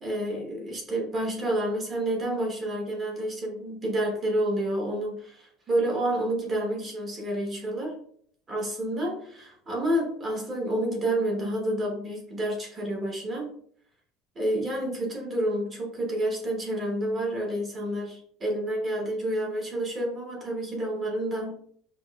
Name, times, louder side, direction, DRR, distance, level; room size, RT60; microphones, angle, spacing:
voice 1, 0.0-8.0 8.5-13.5 14.3-21.5, right 1 dB, 20° right, -2 dB, 0.9 m, -29 dB
5.3 x 2.4 x 2.3 m, 0.62 s
cardioid pair, 180°, 0 cm